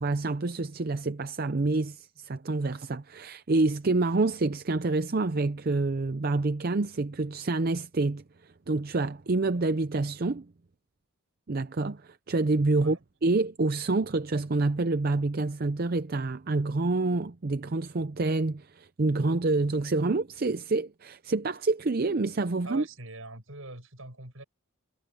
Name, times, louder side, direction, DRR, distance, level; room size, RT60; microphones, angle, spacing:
voice 1, 0.0-10.5 11.5-22.8, right 3 dB, 45° right, 0.6 m, -27 dB
voice 2, 22.6-24.4, right 2 dB, 70° right, 6.3 m, -43 dB
head